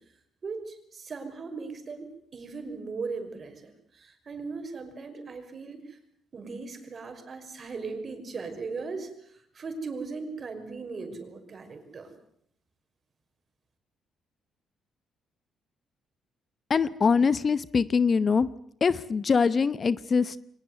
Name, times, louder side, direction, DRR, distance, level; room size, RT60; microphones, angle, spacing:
voice 1, 0.4-2.1 2.3-6.0 6.3-12.1, right 4 dB, 45° right, 7 dB, 5.6 m, -38 dB
voice 2, 16.7-18.5 18.8-20.4, left 5 dB, 40° left, 17 dB, 0.9 m, -23 dB
24.0 x 19.5 x 9.4 m, 0.69 s
cardioid pair, 90°, 0 cm